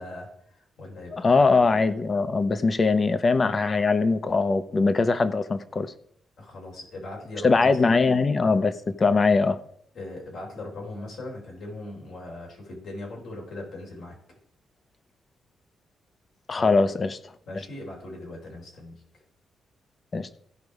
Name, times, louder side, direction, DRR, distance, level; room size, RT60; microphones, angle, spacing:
voice 1, 0.0-1.6 6.4-8.1 9.9-14.2 16.5-16.7 17.5-18.9, left 2 dB, 70° left, 4.0 m, -39 dB
voice 2, 1.1-5.9 7.4-9.6 16.5-17.2 20.1-20.4, left 4 dB, 35° left, 0.8 m, -21 dB
15.5 x 5.2 x 4.8 m
cardioid pair, 105°, 0 cm